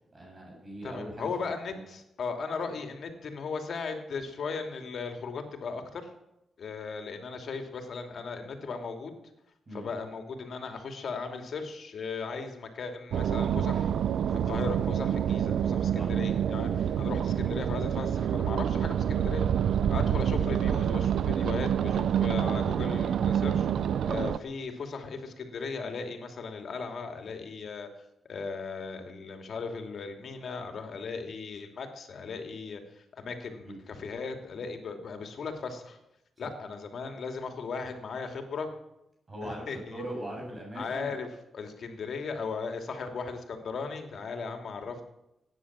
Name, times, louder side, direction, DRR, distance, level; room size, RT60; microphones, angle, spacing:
voice 1, 0.1-1.3 1.6-1.8 9.7-9.9 16.0-16.1 16.8-16.9 33.6-33.8 39.3-39.6 39.9-41.1, right 1 dB, 35° right, -1 dB, 7.6 m, -40 dB
voice 2, 0.8-6.1 6.6-9.1 9.7-13.9 14.3-19.5 19.9-23.7 24.0-27.9 28.3-36.0 36.4-38.7 39.4-40.0 40.7-41.3 41.5-45.1, left 4 dB, 65° left, 5 dB, 2.8 m, -37 dB
sound 1, 13.1-24.4, right 9 dB, 80° right, 0.6 m, -27 dB
16.5 x 10.0 x 7.4 m, 0.89 s
cardioid pair, 75°, 0 cm